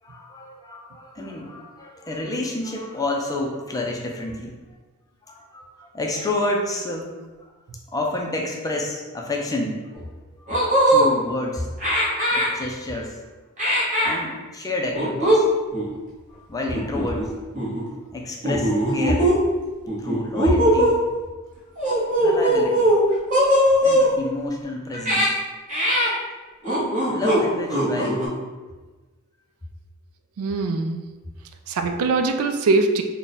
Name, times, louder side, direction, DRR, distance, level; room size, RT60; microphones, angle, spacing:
voice 1, 0.0-4.6 5.3-7.1 7.4-7.5 7.9-10.1 10.4-10.5 10.8-11.7 12.3-13.2 14.0-15.5 16.3-17.4 18.1-19.3 20.0-21.0 22.2-22.9 23.8-25.3 27.0-28.2, left 2 dB, 15° left, 0 dB, 0.4 m, -29 dB
sound 1, 9.9-10.0 10.5-11.1 11.8-12.5 13.6-14.2 14.9-15.4 15.7-15.9 16.7-17.3 17.5-17.8 18.4-19.3 19.9-21.0 21.8-23.0 23.3-24.1 24.9-25.3 25.7-26.1 26.6-27.4 27.7-28.3, equal, 35° right, 1.1 m, -20 dB
voice 2, 30.4-31.0 31.7-33.0, right 3 dB, 75° right, 6 dB, 0.4 m, -22 dB
3.6 x 2.2 x 3.9 m, 1.3 s
head